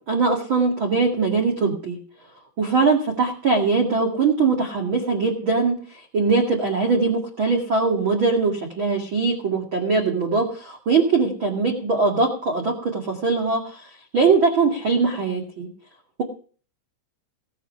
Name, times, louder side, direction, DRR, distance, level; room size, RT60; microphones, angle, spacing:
voice 1, 0.0-2.0 2.6-5.8 6.1-13.8 14.1-15.7, right 4 dB, 40° right, 1 dB, 1.9 m, -21 dB
18.0 x 9.3 x 5.7 m, 0.43 s
omnidirectional pair, 5.4 m